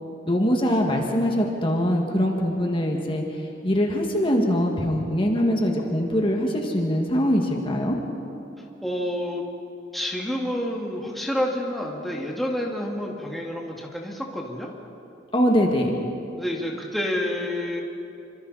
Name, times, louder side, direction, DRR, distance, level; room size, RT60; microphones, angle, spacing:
voice 1, 0.3-3.2 3.6-8.0 15.3-15.9, equal, 30° left, 1 dB, 2.1 m, -22 dB
voice 2, 8.6-9.4 9.9-14.7 16.4-17.8, left 1 dB, ahead, -2 dB, 2.2 m, -29 dB
27.0 x 25.5 x 4.3 m, 2.8 s
head